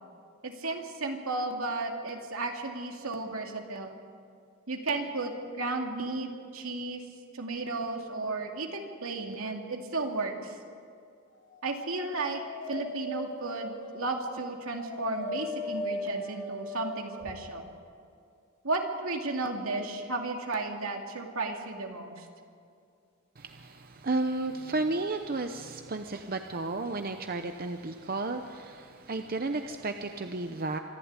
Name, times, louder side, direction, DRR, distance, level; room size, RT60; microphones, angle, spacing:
voice 1, 0.4-3.9 4.7-7.0 7.3-10.6 11.6-12.4 12.7-17.6 18.6-22.3, right 3 dB, 75° right, 2 dB, 2.5 m, -34 dB
Dog, 11.7-17.3, left 1 dB, 70° left, 5.2 m, -38 dB
voice 2, 23.4-30.8, right 2 dB, 45° right, 7 dB, 0.8 m, -33 dB
25.5 x 11.5 x 9.7 m, 2.4 s
head